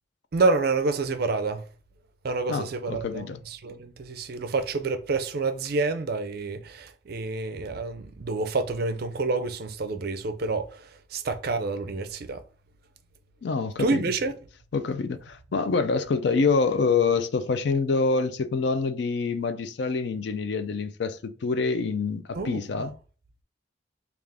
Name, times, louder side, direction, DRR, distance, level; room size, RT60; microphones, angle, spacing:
voice 1, 0.3-1.6 2.2-12.4 13.8-14.3 22.3-22.9, right 3 dB, 50° right, 0.4 m, -28 dB
voice 2, 2.5-3.4 13.4-14.0 14.7-22.9, left 4 dB, 60° left, 0.4 m, -26 dB
3.6 x 2.4 x 3.4 m
head